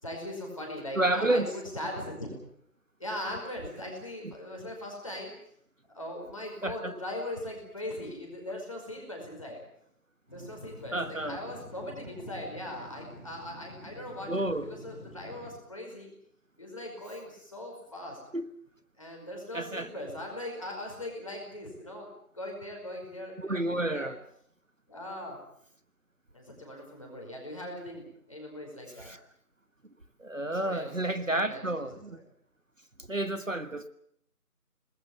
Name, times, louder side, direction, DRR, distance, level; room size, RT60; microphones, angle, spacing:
voice 1, 0.0-2.4 3.0-5.3 5.9-9.6 10.3-16.1 16.6-18.2 19.0-22.1 22.3-24.1 24.9-25.4 26.3-29.1 30.4-32.2, left 1 dB, 20° left, 0 dB, 5.2 m, -40 dB
voice 2, 1.0-1.5 6.6-6.9 10.9-11.4 14.3-14.7 18.3-18.5 19.5-19.9 23.4-24.2 29.0-29.2 30.2-32.2 33.1-33.9, right 1 dB, 55° right, 11 dB, 1.5 m, -30 dB
sound 1, 10.3-15.5, left 1 dB, 10° right, 5.8 m, -48 dB
26.5 x 20.0 x 7.2 m, 0.66 s
figure-of-eight pair, 170°, 46 cm